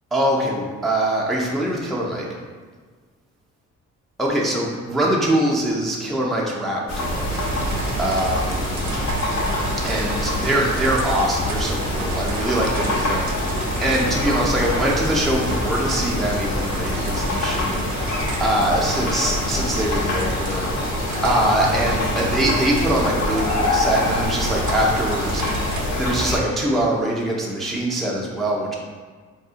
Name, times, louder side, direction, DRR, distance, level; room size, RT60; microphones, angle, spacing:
voice 1, 0.1-2.3 4.2-7.4 8.0-8.7 9.8-28.8, right 1 dB, ahead, -4 dB, 0.4 m, -23 dB
sound 1, 6.9-26.4, left 1 dB, 60° left, 0.8 m, -25 dB
sound 2, 7.3-25.9, right 4 dB, 70° right, 0.5 m, -33 dB
3.6 x 2.5 x 2.4 m, 1.5 s
cardioid pair, 90°, 30 cm